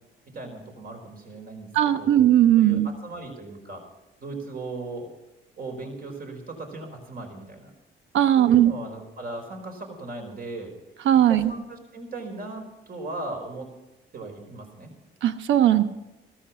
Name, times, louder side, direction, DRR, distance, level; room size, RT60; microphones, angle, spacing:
voice 1, 0.3-1.7 2.0-2.1 2.6-3.8 4.2-5.1 5.6-7.7 8.4-10.7 11.3-13.7 14.1-14.9, right 2 dB, 50° right, 3 dB, 4.8 m, -37 dB
voice 2, 1.7-2.9 8.1-8.7 11.0-11.5 15.2-15.8, right 11 dB, 75° right, 10 dB, 1.1 m, -18 dB
15.5 x 14.0 x 5.6 m, 0.96 s
cardioid pair, 90°, 20 cm